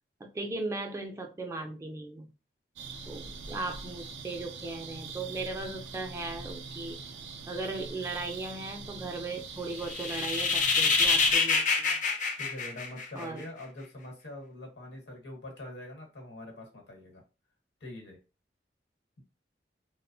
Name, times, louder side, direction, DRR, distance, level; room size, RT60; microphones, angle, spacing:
voice 1, 0.2-2.3 3.1-7.0 7.5-12.0 13.1-13.4, right 2 dB, 15° right, 2 dB, 0.3 m, -37 dB
sound 1, 2.8-11.3, right 4 dB, 80° right, 0.4 m, -43 dB
sound 2, 9.8-13.4, left 4 dB, 45° left, 0.5 m, -26 dB
voice 2, 12.4-17.2 17.8-18.2, left 1 dB, 70° left, 0 dB, 1.0 m, -44 dB
2.8 x 2.0 x 2.6 m, 0.31 s
head